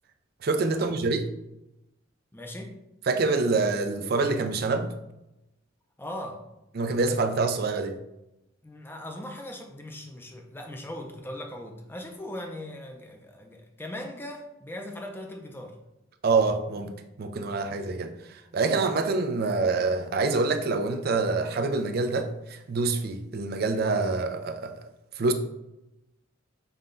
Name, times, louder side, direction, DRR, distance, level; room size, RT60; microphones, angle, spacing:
voice 1, 0.4-1.3 3.1-4.9 6.7-8.0 16.2-24.9 25.2-25.3, right 3 dB, 50° right, 7 dB, 0.4 m, -26 dB
voice 2, 2.3-2.8 6.0-6.4 8.6-15.8, left 1 dB, 10° left, 3 dB, 0.4 m, -39 dB
5.5 x 2.2 x 3.7 m, 0.91 s
head